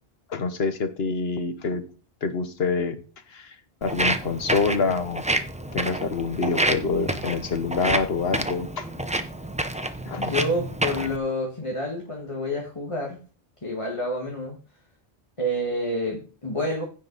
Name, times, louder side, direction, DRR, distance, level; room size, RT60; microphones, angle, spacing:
voice 1, 0.3-1.8 2.2-2.9 3.3-3.5 3.8-5.2 5.7-8.9 10.1-10.2, left 4 dB, 75° left, 9 dB, 1.4 m, -26 dB
Walk footsteps, 3.8-11.2, right 1 dB, 10° right, 0.6 m, -28 dB
voice 2, 10.2-13.2 13.6-14.6 15.4-16.8, left 1 dB, 30° left, -1 dB, 1.9 m, -28 dB
15.5 x 5.3 x 4.0 m, 0.36 s
omnidirectional pair, 1.1 m